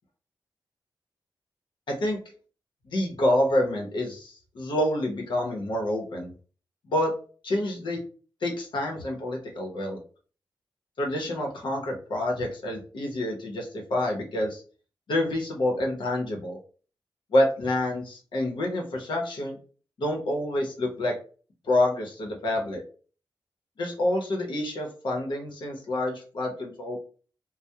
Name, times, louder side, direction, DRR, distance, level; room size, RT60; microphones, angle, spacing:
voice 1, 1.9-2.2 2.8-6.3 6.8-7.2 7.4-8.0 8.4-10.0 11.0-14.6 15.1-16.6 17.3-19.6 20.0-21.2 21.6-22.8 23.8-27.0, left 1 dB, 75° left, 0 dB, 0.7 m, -27 dB
2.2 x 2.0 x 2.7 m, 0.39 s
wide cardioid pair, 90°, 8 cm